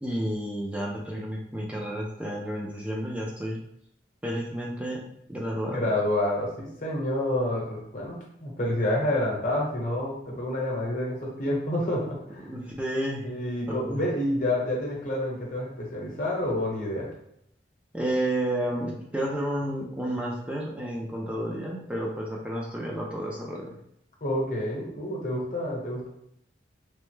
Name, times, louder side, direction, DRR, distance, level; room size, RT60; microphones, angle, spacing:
voice 1, 0.0-3.6 4.2-5.9 12.4-13.3 13.7-14.0 17.9-23.8, right 1 dB, 5° right, -3 dB, 0.4 m, -31 dB
voice 2, 5.7-12.5 13.2-17.1 24.2-26.1, left 1 dB, 45° left, -3 dB, 0.9 m, -28 dB
3.2 x 2.0 x 3.1 m, 0.73 s
head